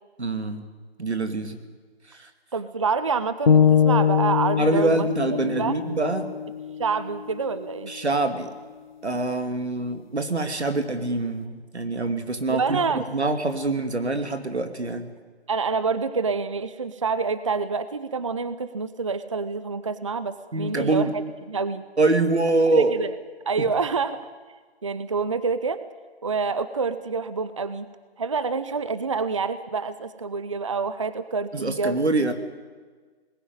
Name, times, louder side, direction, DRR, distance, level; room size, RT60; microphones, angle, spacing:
voice 1, 0.2-0.7 1.0-1.6 2.1-2.3 4.6-6.3 7.9-8.5 9.0-15.1 20.5-21.2 22.0-22.9 23.6-23.7 31.5-32.3, right 3 dB, 85° right, 7 dB, 2.7 m, -25 dB
voice 2, 2.5-5.1 5.6-5.8 6.8-7.9 12.5-13.0 15.5-21.1 21.5-21.9 22.7-23.1 23.5-24.2 24.8-25.8 26.2-27.9 28.2-32.0, right 4 dB, 30° right, 13 dB, 0.6 m, -27 dB
sound 1, 3.5-7.6, left 8 dB, 45° left, 0.9 m, -22 dB
20.0 x 16.5 x 9.5 m, 1.4 s
figure-of-eight pair, 160°, 32 cm